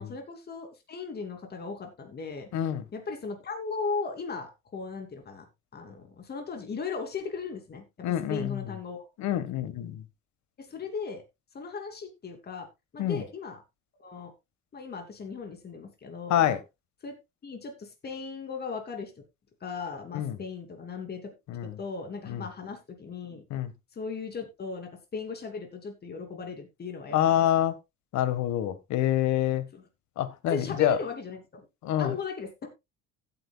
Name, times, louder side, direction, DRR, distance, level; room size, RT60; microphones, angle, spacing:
voice 1, 0.0-2.5 2.9-5.5 5.7-9.1 10.6-11.2 11.5-12.7 12.9-13.6 14.0-14.3 14.7-16.5 17.0-17.1 17.4-19.1 19.6-21.3 21.6-23.4 23.9-27.5 29.7-29.8 30.5-31.7 32.0-32.7, left 4 dB, 30° left, 2.8 m, -37 dB
voice 2, 2.5-2.8 8.0-8.6 9.2-10.0 13.0-13.2 16.3-16.6 20.1-20.4 21.5-21.8 22.3-22.4 23.5-23.7 27.1-27.7 28.1-29.6 30.2-31.0 31.8-32.1, left 11 dB, 65° left, 1.5 m, -26 dB
15.5 x 8.7 x 2.3 m
cardioid pair, 150°, 30 cm